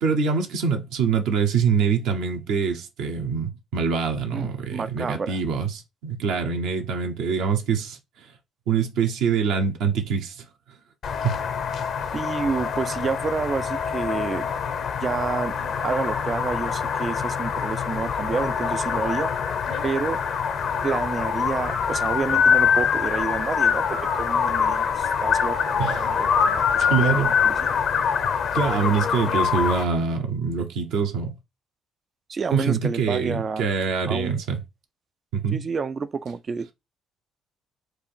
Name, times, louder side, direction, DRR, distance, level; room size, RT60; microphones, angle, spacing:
voice 1, 0.0-8.0 8.7-10.4 11.2-11.4 25.8-26.1 26.9-27.4 28.5-31.4 32.5-34.6 35.3-35.6, right 6 dB, 75° right, 1.0 m, -24 dB
voice 2, 4.3-5.4 12.1-14.5 15.0-19.3 19.8-20.2 20.8-27.7 32.3-33.6 34.1-34.4 35.5-36.7, right 5 dB, 45° right, 0.4 m, -29 dB
sound 1, 11.0-29.8, left 6 dB, 65° left, 0.8 m, -24 dB
4.6 x 2.6 x 4.4 m
hypercardioid pair, 55°, 0 cm